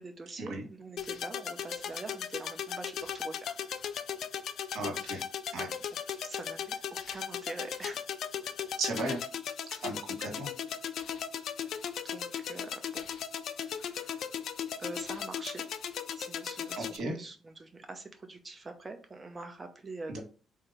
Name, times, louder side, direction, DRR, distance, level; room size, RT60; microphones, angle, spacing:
voice 1, 0.0-3.6 6.2-8.0 11.6-13.0 13.6-14.2 14.8-15.6 16.2-20.2, right 3 dB, 25° right, 5 dB, 0.8 m, -44 dB
sound 1, 1.0-17.0, left 8 dB, 70° left, 0.4 m, -37 dB
voice 2, 4.7-5.2 5.5-5.7 8.8-9.2 9.8-10.5 16.8-17.1 20.1-20.2, right 2 dB, 75° right, 2 dB, 1.6 m, -35 dB
3.8 x 2.8 x 4.9 m, 0.37 s
cardioid pair, 90°, 0 cm